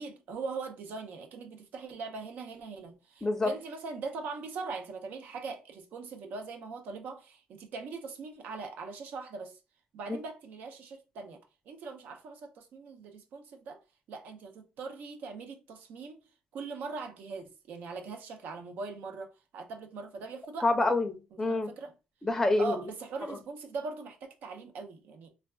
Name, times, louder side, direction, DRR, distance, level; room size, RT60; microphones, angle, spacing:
voice 1, 0.0-9.6 9.9-11.4 11.7-13.8 14.1-16.2 16.5-20.7 21.3-21.9 22.6-25.3, right 4 dB, 75° right, 0.6 m, -41 dB
voice 2, 3.2-3.5 20.6-21.7 22.2-22.8 23.3-23.4, left 2 dB, 15° left, 0.5 m, -27 dB
3.3 x 2.5 x 2.2 m
cardioid pair, 115°, 3 cm